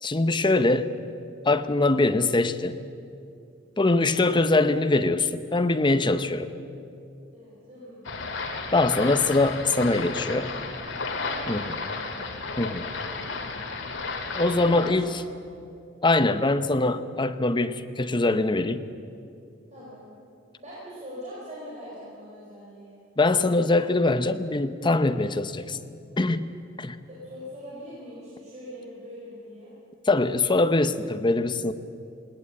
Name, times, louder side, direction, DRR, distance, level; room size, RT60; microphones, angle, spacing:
voice 1, 0.0-0.9 1.4-2.8 3.8-6.5 8.7-10.5 11.5-11.7 12.6-12.9 14.3-15.1 16.0-18.9 23.2-25.8 26.2-27.0 30.1-31.7, left 2 dB, 25° left, 11 dB, 0.8 m, -23 dB
voice 2, 5.9-6.6 7.3-8.3 9.0-10.3 11.1-12.1 13.0-13.4 14.5-15.1 19.7-20.1 20.6-23.0 27.1-29.7, equal, 35° right, -7 dB, 5.2 m, -43 dB
sound 1, 8.0-14.9, left 3 dB, 70° left, 2.2 m, -33 dB
19.5 x 18.5 x 8.6 m, 2.6 s
head